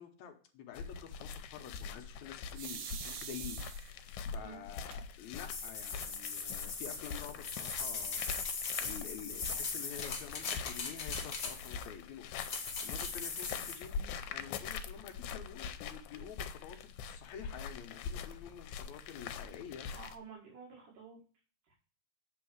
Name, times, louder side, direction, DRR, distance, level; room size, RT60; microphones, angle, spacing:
voice 1, 0.0-8.4 8.8-19.9, left 8 dB, 75° left, 6 dB, 2.1 m, -49 dB
sound 1, 0.8-20.2, left 6 dB, 90° left, 2.2 m, -44 dB
sound 2, 2.5-4.1 4.9-5.0 5.4-5.5 5.8-6.4, right 7 dB, 65° right, 1.6 m, -44 dB
sound 3, 5.3-11.9 12.4-13.9, left 4 dB, 55° left, 1.0 m, -40 dB
voice 2, 19.9-21.2 21.7-21.8, right 5 dB, 80° right, -4 dB, 3.5 m, -51 dB
7.8 x 4.1 x 6.2 m, 0.42 s
omnidirectional pair, 3.5 m